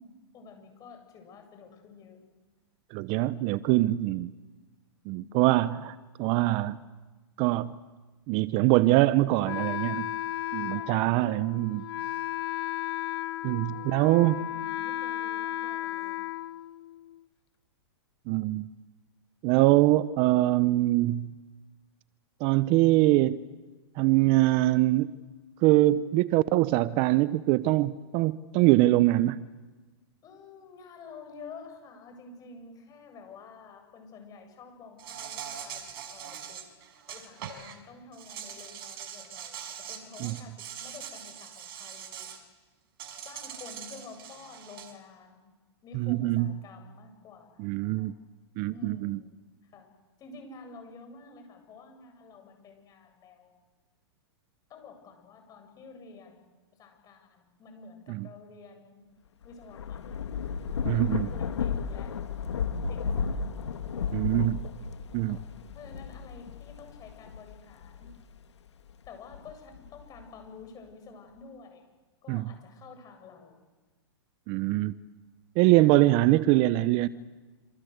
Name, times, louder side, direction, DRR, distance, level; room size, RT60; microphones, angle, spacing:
voice 1, 0.0-2.2 5.1-5.4 10.7-11.0 13.7-16.3 30.2-36.6 37.1-42.3 43.2-45.5 45.8-48.1 48.7-49.9 50.2-53.5 54.7-56.4 56.8-59.0 59.4-60.0 60.8-62.1 62.9-63.4 63.9-64.6 65.2-65.5 65.7-68.1 69.1-71.8 72.2-73.6 75.7-75.9, left 4 dB, 25° left, 7.7 m, -49 dB
voice 2, 2.9-4.3 5.1-6.8 7.4-7.8 8.3-10.1 10.5-11.8 13.4-14.4 18.3-18.7 19.4-21.3 22.4-23.4 24.0-25.1 25.6-29.4 40.2-40.4 45.9-46.5 47.6-48.1 48.6-49.2 58.1-58.3 60.9-61.3 64.1-64.6 65.1-65.4 72.3-72.5 74.5-74.9 75.6-77.1, right 17 dB, 35° right, 0.8 m, -23 dB
Wind instrument woodwind instrument, 9.4-17.2, left 13 dB, 65° left, 1.0 m, -34 dB
Insect, 35.0-37.7 38.1-42.4 43.0-44.9, right 9 dB, 60° right, 5.3 m, -42 dB
Thunder / Rain, 59.4-68.3 68.9-70.2, left 6 dB, 85° left, 1.8 m, -33 dB
27.5 x 27.0 x 8.1 m
hypercardioid pair, 135°, 14 cm